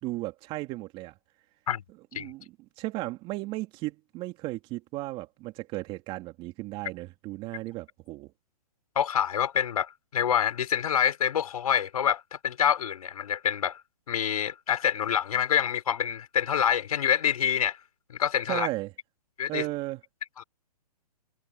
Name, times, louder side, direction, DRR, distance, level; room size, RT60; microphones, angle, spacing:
voice 1, 0.0-1.1 2.1-2.4 2.8-8.3 18.5-18.9 19.5-20.0, right 19 dB, 25° right, 2.3 m, -35 dB
voice 2, 8.9-13.8 14.1-17.8 18.1-18.7 19.4-19.7 20.4-20.5, left 9 dB, 65° left, 4.5 m, -26 dB
hypercardioid pair, 145°, 20 cm